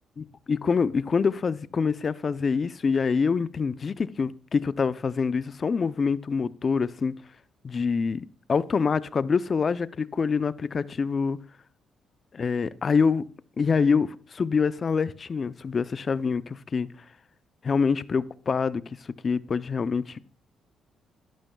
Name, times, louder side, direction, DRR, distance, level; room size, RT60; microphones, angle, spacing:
voice 1, 0.5-7.1 7.6-11.4 12.3-13.3 13.6-16.9 17.6-18.8 19.2-20.2, left 5 dB, 40° left, 0.6 m, -25 dB
12.5 x 11.5 x 2.3 m
cardioid pair, 90°, 0 cm